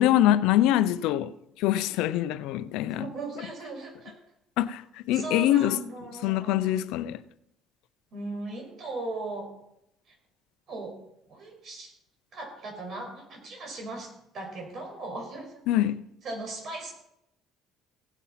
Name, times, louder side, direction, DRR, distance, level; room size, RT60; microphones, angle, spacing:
voice 1, 0.0-3.1 4.6-4.8 5.1-5.8 6.2-7.2 15.7-16.0, left 13 dB, 80° left, 0.6 m, -24 dB
voice 2, 2.9-4.1 5.1-6.8 8.1-9.5 10.1-10.2 10.7-10.9 11.3-11.9 12.3-15.6 16.2-16.9, right 2 dB, 50° right, 5.8 m, -38 dB
17.0 x 8.3 x 5.9 m
cardioid pair, 115°, 0 cm